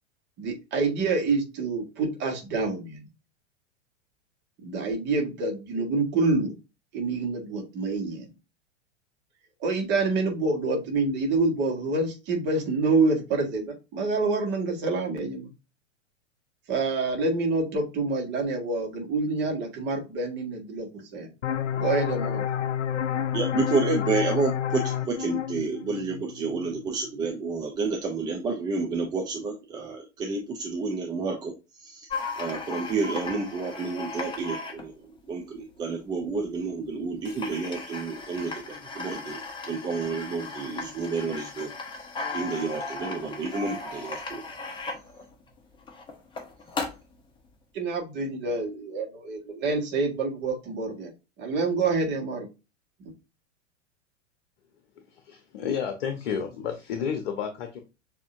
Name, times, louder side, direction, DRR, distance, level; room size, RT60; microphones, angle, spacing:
voice 1, 0.4-3.1 4.6-6.5 6.9-8.3 9.6-15.5 16.7-21.3 21.8-22.4 47.7-51.1 51.4-52.5, right 3 dB, 30° right, 2 dB, 1.6 m, -27 dB
sound 1, 21.4-26.8, left 9 dB, 75° left, 0.5 m, -29 dB
voice 2, 23.3-32.1 32.4-41.7 42.0-44.4, right 4 dB, 10° right, 1 dB, 0.5 m, -30 dB
sound 2, 32.1-35.8 36.6-36.7 37.0-37.1 37.2-47.2, left 3 dB, 15° left, 1.0 m, -36 dB
voice 3, 55.0-57.8, left 7 dB, 50° left, 6 dB, 0.9 m, -31 dB
6.9 x 2.9 x 2.6 m, 0.27 s
figure-of-eight pair, 95°, 37 cm